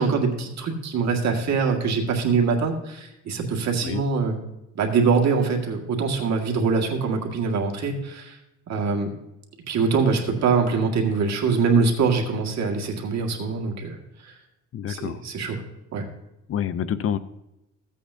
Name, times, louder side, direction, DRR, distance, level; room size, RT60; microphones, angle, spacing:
voice 1, 0.0-4.4 4.8-8.4 8.7-9.1 9.7-14.0 14.2-14.3 14.9-15.6 15.9-16.1, right 5 dB, 65° right, 2 dB, 1.8 m, -23 dB
voice 2, 14.7-15.2 16.5-17.2, left 9 dB, 50° left, 15 dB, 0.5 m, -27 dB
14.5 x 8.4 x 2.7 m, 0.91 s
cardioid pair, 90°, 30 cm